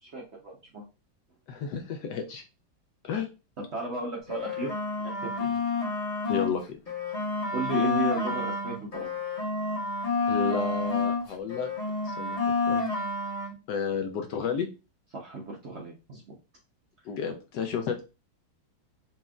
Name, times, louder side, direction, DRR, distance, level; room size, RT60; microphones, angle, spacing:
voice 1, 0.0-0.8 3.6-5.5 7.5-9.1 15.1-16.3, right 3 dB, 55° right, -2 dB, 0.7 m, -35 dB
voice 2, 1.5-2.4 3.0-3.3 6.3-6.8 10.3-11.7 12.0-12.4 12.6-12.9 13.7-14.7 17.0-18.0, left 6 dB, 75° left, 6 dB, 1.1 m, -31 dB
sound 1, 4.2-6.5 6.9-11.2 11.5-13.5, left 3 dB, 25° left, 1.0 m, -29 dB
4.2 x 3.0 x 2.3 m, 0.29 s
omnidirectional pair, 2.1 m